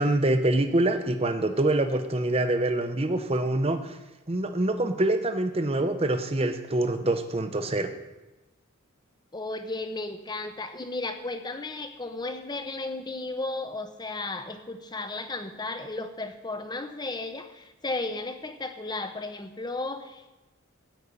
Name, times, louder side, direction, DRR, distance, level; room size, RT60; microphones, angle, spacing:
voice 1, 0.0-3.9 4.3-7.9, right 1 dB, 30° right, 8 dB, 0.8 m, -25 dB
voice 2, 9.3-20.3, left 2 dB, 20° left, 7 dB, 0.8 m, -34 dB
14.0 x 5.3 x 8.3 m, 1.1 s
head